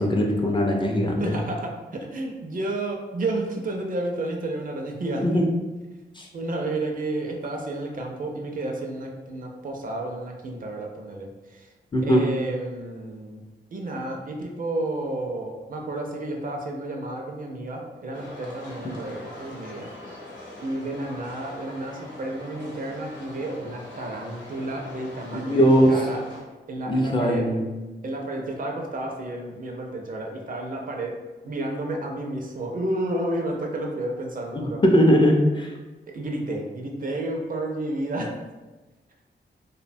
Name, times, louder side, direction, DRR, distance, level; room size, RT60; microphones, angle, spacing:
voice 1, 0.0-1.4 5.2-5.4 6.2-6.3 11.9-12.2 18.8-19.0 25.5-25.9 26.9-27.7 34.5-35.7, equal, 25° left, 0 dB, 0.4 m, -20 dB
voice 2, 1.2-5.4 6.3-11.7 12.0-13.4 13.7-19.9 20.6-26.2 26.7-27.5 28.0-31.2 31.4-34.8 36.1-38.4, right 2 dB, 50° right, 1 dB, 0.4 m, -31 dB
sound 1, 18.1-26.4, left 2 dB, 85° left, 0.8 m, -42 dB
2.6 x 2.1 x 2.6 m, 1.2 s
wide cardioid pair, 95°, 19 cm